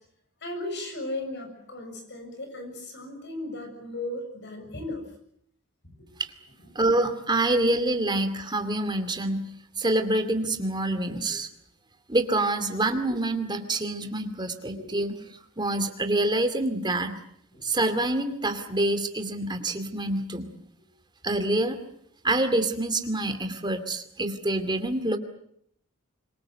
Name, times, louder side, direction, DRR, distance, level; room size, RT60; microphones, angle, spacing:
voice 1, 0.4-5.1 6.0-6.1 6.6-6.7 14.7-14.9 17.5-17.6, left 1 dB, 55° left, 6 dB, 6.8 m, -36 dB
voice 2, 6.7-9.5 9.8-11.5 12.1-15.2 15.6-17.2 17.6-20.5 21.2-21.8 22.2-25.2, right 2 dB, 20° right, 8 dB, 2.4 m, -26 dB
25.5 x 23.0 x 7.8 m, 0.70 s
head